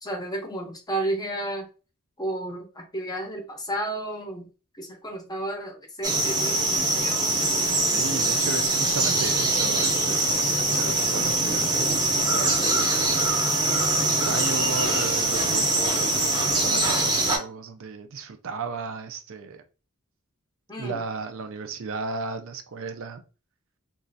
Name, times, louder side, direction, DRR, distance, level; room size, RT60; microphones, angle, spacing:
voice 1, 0.0-1.7 2.2-4.5 4.8-6.6 7.0-7.4 20.7-21.0, right 1 dB, 20° left, 0.7 m, -32 dB
sound 1, 6.0-17.4, right 2 dB, 20° right, 0.7 m, -23 dB
voice 2, 7.8-13.4 14.0-19.6 20.8-23.2, right 4 dB, 65° right, 0.4 m, -35 dB
3.1 x 2.4 x 2.6 m
head